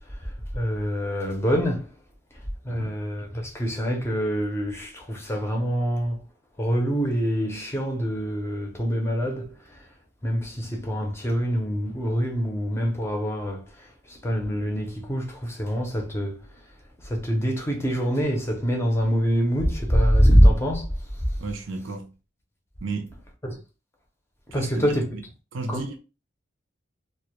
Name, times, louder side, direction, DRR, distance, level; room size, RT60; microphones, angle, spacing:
voice 1, 0.0-2.0 2.3-6.2 6.6-9.9 10.2-21.4 23.4-23.6 24.5-25.1 25.7-26.0, equal, 15° left, 0.5 m, -25 dB
voice 2, 21.4-22.1 22.8-23.2 24.5-25.0 25.5-26.0, right 3 dB, 75° right, 0.5 m, -32 dB
2.1 x 2.1 x 2.9 m
head